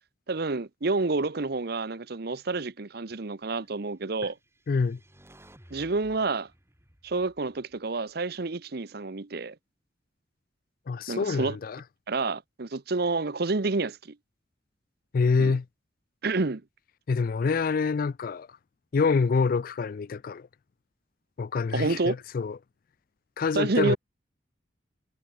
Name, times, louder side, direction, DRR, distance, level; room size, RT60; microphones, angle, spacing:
voice 1, 0.3-4.4 5.7-6.5 7.0-9.5 11.1-11.6 12.1-14.1 15.4-15.6 16.2-16.6 21.7-22.2 23.5-24.0, right 3 dB, 55° right, 0.9 m, -29 dB
sound 1, 4.2-8.5, right 1 dB, 15° right, 6.7 m, -57 dB
voice 2, 4.7-5.0 10.9-11.8 15.1-15.6 17.1-18.5 18.9-20.5 21.4-22.6 23.4-24.0, left 4 dB, 50° left, 0.4 m, -26 dB
head